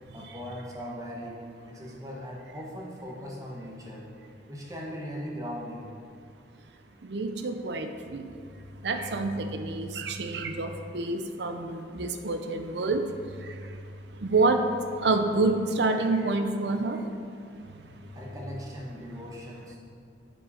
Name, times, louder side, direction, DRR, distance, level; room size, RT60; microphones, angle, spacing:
voice 1, 0.1-1.4 1.7-4.1 4.5-5.9 18.1-19.8, equal, 20° right, -3 dB, 1.3 m, -39 dB
voice 2, 7.1-8.3 8.8-13.0 14.2-14.6 15.0-17.0, right 3 dB, 70° right, 6 dB, 0.6 m, -27 dB
9.7 x 5.3 x 4.3 m, 2.4 s
head